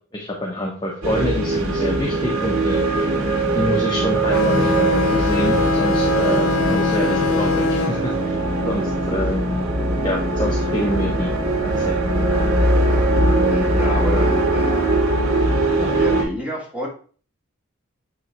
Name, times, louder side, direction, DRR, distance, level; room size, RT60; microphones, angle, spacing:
voice 1, 0.1-2.8 3.5-8.4 8.7-9.4 10.0-11.3 11.6-12.2 13.2-13.6, equal, 20° left, -2 dB, 1.1 m, -26 dB
sound 1, 1.0-16.2, right 2 dB, 85° right, 2.3 m, -20 dB
sound 2, 4.3-9.4, left 5 dB, 85° left, 0.6 m, -23 dB
voice 2, 13.5-14.9 15.8-16.9, equal, 5° right, -4 dB, 2.2 m, -29 dB
8.9 x 3.5 x 3.3 m, 0.42 s
head